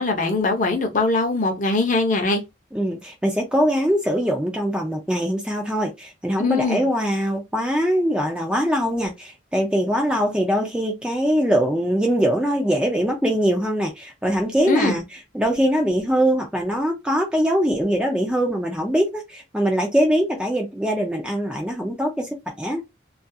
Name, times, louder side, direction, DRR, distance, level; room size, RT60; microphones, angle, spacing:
voice 1, 0.0-2.4 6.4-6.8 14.7-15.0, left 2 dB, 40° left, 0.7 m, -21 dB
voice 2, 2.7-15.0 15.3-22.8, equal, 5° right, 0.4 m, -22 dB
2.4 x 2.3 x 2.6 m
head